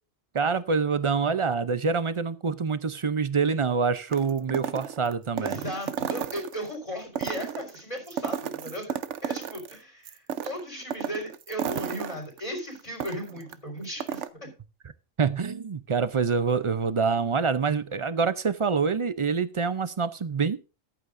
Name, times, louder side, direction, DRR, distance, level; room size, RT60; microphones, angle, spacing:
voice 1, 0.3-5.6 15.2-20.6, right 5 dB, 45° right, 13 dB, 0.4 m, -26 dB
sound 1, 4.1-6.7 7.1-9.8 10.1-13.5 13.8-14.3, right 9 dB, 70° right, 1.0 m, -33 dB
voice 2, 5.4-9.0 9.2-10.2 10.4-14.2, equal, 30° left, 1 dB, 4.7 m, -36 dB
14.0 x 11.5 x 2.5 m, 0.31 s
omnidirectional pair, 1.3 m